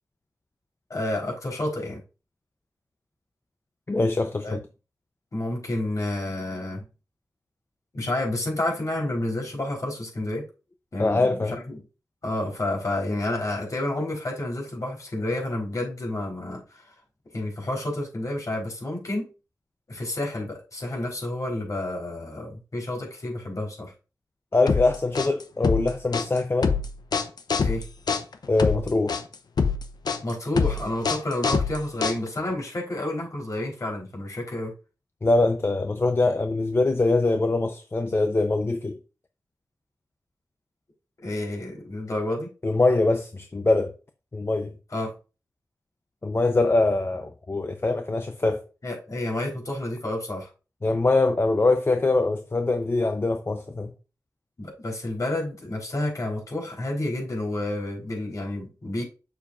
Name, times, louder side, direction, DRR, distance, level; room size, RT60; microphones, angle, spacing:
voice 1, 0.9-2.0 4.4-4.6 5.3-6.8 7.9-10.4 10.9-11.8 12.2-16.9 17.3-19.3 19.9-23.9 27.6-27.9 30.2-34.7 41.2-42.5 44.9-45.1 48.8-50.5 54.6-59.0, left 1 dB, 55° left, 3.8 m, -30 dB
voice 2, 3.9-4.6 11.0-11.6 24.5-26.7 28.5-29.2 35.2-39.0 42.6-43.9 44.3-44.7 46.2-48.6 50.8-53.9, left 2 dB, 35° left, 0.7 m, -23 dB
sound 1, 24.7-32.5, left 5 dB, 75° left, 0.8 m, -25 dB
7.3 x 6.7 x 2.5 m
cardioid pair, 60°, 7 cm